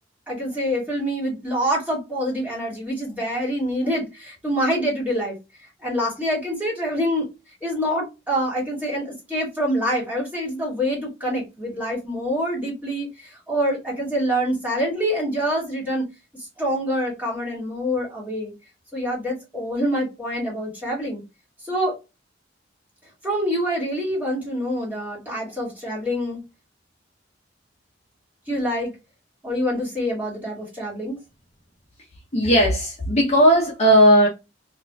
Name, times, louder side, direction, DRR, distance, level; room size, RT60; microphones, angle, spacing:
voice 1, 0.3-5.4 5.8-7.3 7.6-16.1 16.3-18.5 18.9-21.2 21.6-22.0 23.2-26.4 28.5-28.9 29.4-31.2, equal, 10° right, 2.0 m, -26 dB
voice 2, 32.3-34.3, equal, 35° left, 0.9 m, -16 dB
4.1 x 2.6 x 2.3 m
head